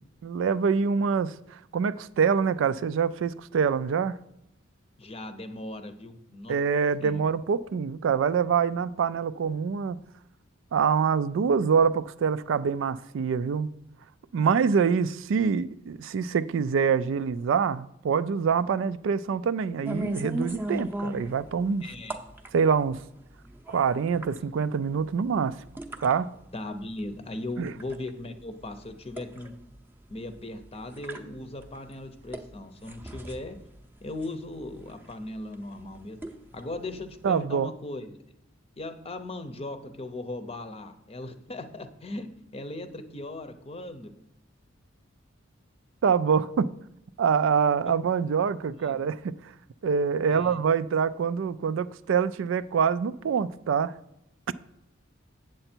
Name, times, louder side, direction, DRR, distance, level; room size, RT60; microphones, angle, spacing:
voice 1, 0.2-4.2 6.5-10.0 10.7-13.7 14.3-21.9 22.5-23.0 23.7-25.6 26.0-26.3 27.6-27.7 37.2-37.7 46.0-46.7 47.2-49.3 49.8-53.9, right 6 dB, 65° right, 0.3 m, -25 dB
voice 2, 5.0-6.6 7.0-7.3 21.8-22.2 26.5-29.5 30.1-33.6 34.0-36.2 36.5-38.2 38.8-44.1 47.9-48.0 48.7-49.0 50.3-50.6, left 2 dB, 30° left, 0.7 m, -38 dB
sound 1, 19.9-37.4, right 1 dB, 10° right, 0.7 m, -40 dB
7.8 x 7.7 x 4.4 m
head